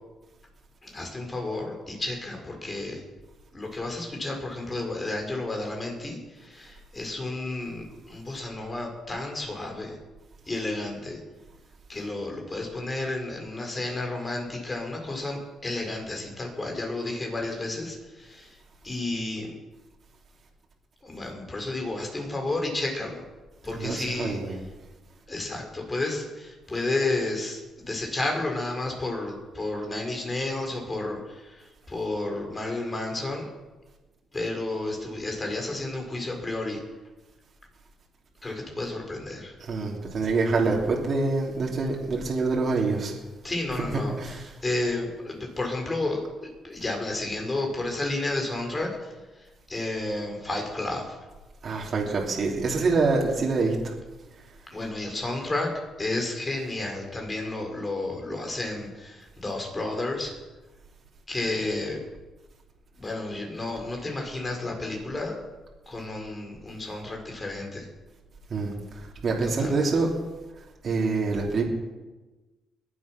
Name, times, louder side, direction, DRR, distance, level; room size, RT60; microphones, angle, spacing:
voice 1, 0.8-3.0 3.5-10.0 10.5-11.2 11.9-18.6 18.8-19.5 21.0-23.2 23.6-24.4 25.3-33.5 34.3-36.8 38.4-39.6 43.4-46.2 46.6-49.1 49.4-51.3 54.7-55.7 56.0-60.3 61.3-62.0 63.0-65.4 65.9-67.9 69.6-69.9, left 2 dB, 25° left, 1 dB, 4.7 m, -31 dB
voice 2, 23.7-24.6 39.6-43.1 44.2-44.5 51.6-53.7 68.5-70.1 70.8-71.6, right 3 dB, 50° right, -2 dB, 3.2 m, -26 dB
22.0 x 8.4 x 6.1 m, 1.2 s
cardioid pair, 90°, 0 cm